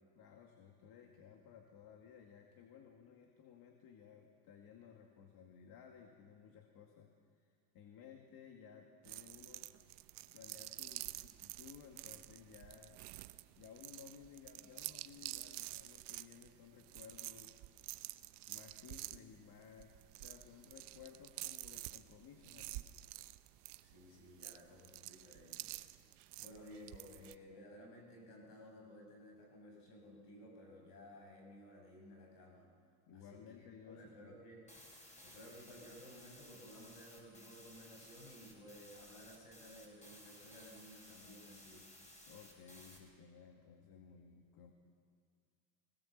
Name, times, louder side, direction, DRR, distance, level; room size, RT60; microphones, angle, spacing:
voice 1, 0.1-7.1 7.4-9.7 10.3-13.0 13.6-17.6 18.5-22.9 27.2-27.3 33.1-34.3 42.3-44.7, left 7 dB, 55° left, 3 dB, 2.1 m, -58 dB
sound 1, 9.0-27.4, right 19 dB, 70° right, 0.9 m, -49 dB
voice 2, 23.8-25.7 26.4-32.7 33.1-34.7 35.2-41.9, equal, 90° left, 0 dB, 6.2 m, -56 dB
sound 2, 34.7-43.0, left 1 dB, 15° left, 6.1 m, -58 dB
20.5 x 18.5 x 7.4 m, 2.1 s
supercardioid pair, 95°, 45 cm